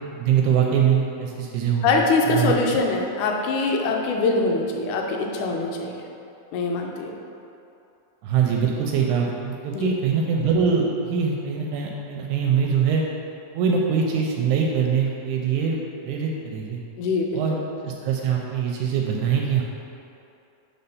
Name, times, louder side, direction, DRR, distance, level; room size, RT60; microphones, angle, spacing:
voice 1, 0.2-1.9 2.3-2.5 8.2-13.0 13.5-15.8 16.0-16.8 17.3-17.6 17.8-19.6, right 6 dB, 80° right, 0 dB, 1.9 m, -23 dB
voice 2, 1.8-6.1 6.5-7.2 9.7-9.9 17.0-17.6, left 3 dB, 80° left, 1 dB, 2.0 m, -23 dB
4.3 x 4.2 x 5.4 m, 2.7 s
omnidirectional pair, 3.6 m